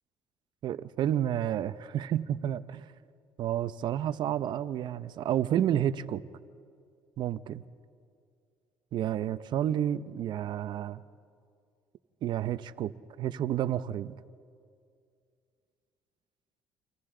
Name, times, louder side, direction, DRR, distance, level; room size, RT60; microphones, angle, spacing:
voice 1, 0.6-2.9 3.4-6.2 7.2-7.6 8.9-11.0 12.2-12.9 13.2-14.2, right 11 dB, 60° right, 14 dB, 0.7 m, -30 dB
28.0 x 27.5 x 3.9 m, 2.3 s
cardioid pair, 90°, 9 cm